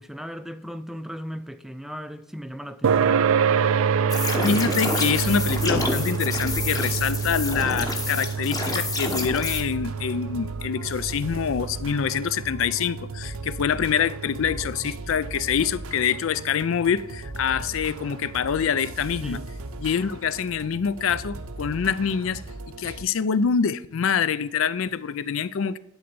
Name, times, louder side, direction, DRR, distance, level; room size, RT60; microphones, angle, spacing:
voice 1, 0.0-3.3 19.2-19.5, equal, ahead, 0.4 m, -37 dB
sound 1, 2.8-17.7, right 6 dB, 75° right, 0.4 m, -28 dB
sound 2, 4.1-9.6, left 2 dB, 20° left, 1.0 m, -28 dB
voice 2, 4.4-19.4 19.8-22.4 22.8-25.8, left 7 dB, 65° left, 0.4 m, -25 dB
sound 3, 5.0-23.0, right 2 dB, 90° right, 0.7 m, -38 dB
11.0 x 3.9 x 6.8 m
head